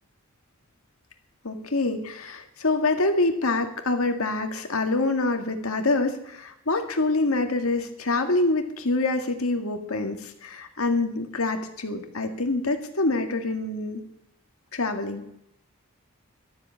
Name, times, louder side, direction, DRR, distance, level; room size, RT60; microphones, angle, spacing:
voice 1, 1.4-14.0 14.7-15.2, left 2 dB, 90° left, 5 dB, 2.0 m, -26 dB
13.0 x 7.9 x 9.7 m, 0.77 s
head